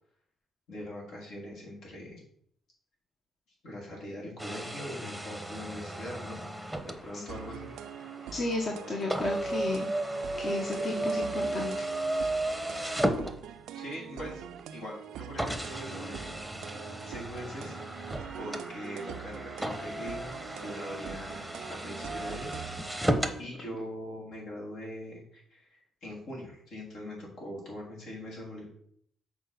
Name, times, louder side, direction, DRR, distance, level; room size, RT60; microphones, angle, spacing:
voice 1, 0.7-2.2 3.6-6.4 6.8-7.7 13.7-16.4 17.0-17.7 18.4-22.5 23.4-28.7, left 1 dB, 75° left, -4 dB, 3.5 m, -42 dB
sound 1, 4.4-13.9 14.6-14.7 15.4-23.4, right 1 dB, ahead, 0.9 m, -34 dB
sound 2, 7.3-23.0, right 10 dB, 85° right, 0.4 m, -44 dB
voice 2, 8.3-9.9 10.4-11.9 12.8-12.9, left 2 dB, 45° left, 0 dB, 1.1 m, -33 dB
6.9 x 4.2 x 5.9 m, 0.68 s
cardioid pair, 90°, 0 cm